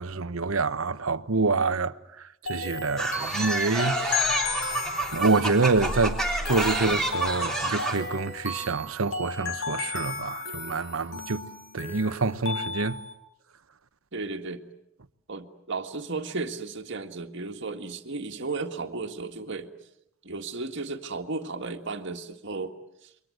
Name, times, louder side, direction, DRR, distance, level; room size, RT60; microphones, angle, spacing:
voice 1, 0.0-1.9 2.4-4.5 5.1-11.5 11.7-13.0, right 3 dB, 80° right, 1.0 m, -27 dB
sound 1, 2.5-13.1, left 4 dB, 65° left, 4.6 m, -34 dB
sound 2, 3.0-8.0, right 2 dB, 5° left, 3.3 m, -29 dB
sound 3, 3.7-5.3 5.7-9.7 10.1-11.5, right 1 dB, 30° right, 1.5 m, -41 dB
voice 2, 14.1-14.6 15.3-19.7 20.2-22.7 23.0-23.1, right 3 dB, 60° right, 1.9 m, -34 dB
28.5 x 23.5 x 7.9 m
head